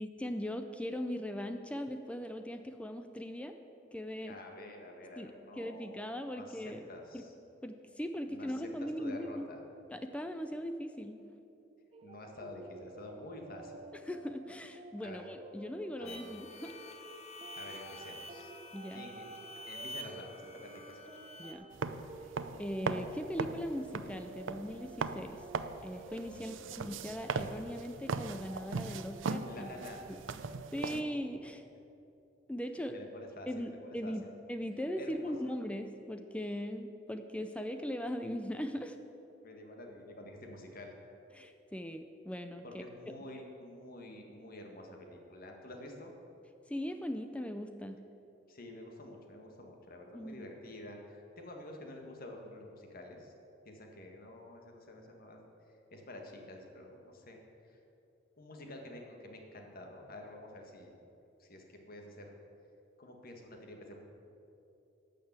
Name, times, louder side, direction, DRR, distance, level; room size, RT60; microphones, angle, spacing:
voice 1, 0.0-3.6 3.9-4.4 5.2-6.8 7.1-7.2 7.6-9.5 9.9-11.2 14.0-16.8 18.7-19.1 21.4-21.7 22.6-25.4 25.8-29.7 30.7-31.6 32.5-33.0 33.5-34.2 34.5-39.0 41.3-42.8 46.7-48.0 50.1-50.5, equal, 5° left, 7 dB, 0.4 m, -39 dB
voice 2, 4.2-6.0 6.3-7.3 8.3-9.6 12.0-13.7 15.0-15.2 16.0-16.2 17.5-18.5 18.9-19.2 19.6-21.0 26.3-27.0 29.4-30.1 32.9-34.1 35.0-35.3 39.4-41.0 42.6-46.1 48.5-53.3 53.6-55.5 55.9-57.8 58.4-61.0 61.4-62.3 63.0-63.9, left 1 dB, 50° left, 2 dB, 1.7 m, -49 dB
sound 1, 11.9-30.9, right 3 dB, 30° right, 0.7 m, -52 dB
sound 2, 16.1-21.5, left 1 dB, 35° left, 1.0 m, -48 dB
sound 3, 21.7-31.0, right 4 dB, 80° right, 0.6 m, -39 dB
12.0 x 6.7 x 8.1 m, 2.8 s
head